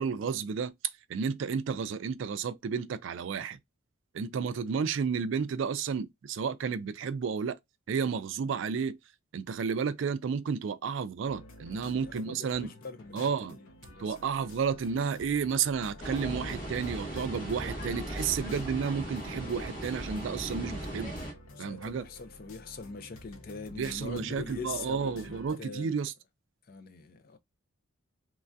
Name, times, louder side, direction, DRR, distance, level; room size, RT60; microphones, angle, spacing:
voice 1, 0.0-3.6 4.1-7.6 7.9-9.0 9.3-12.7 13.1-13.6 14.0-21.2 21.6-22.1 23.7-26.1, right 6 dB, 65° right, 0.3 m, -32 dB
sound 1, 11.2-25.6, left 1 dB, 85° left, 0.7 m, -50 dB
voice 2, 11.7-14.1 21.5-26.0 26.7-27.4, left 4 dB, 45° left, 0.4 m, -43 dB
sound 2, 16.0-21.3, right 1 dB, 65° left, 1.5 m, -38 dB
3.1 x 2.3 x 2.5 m
head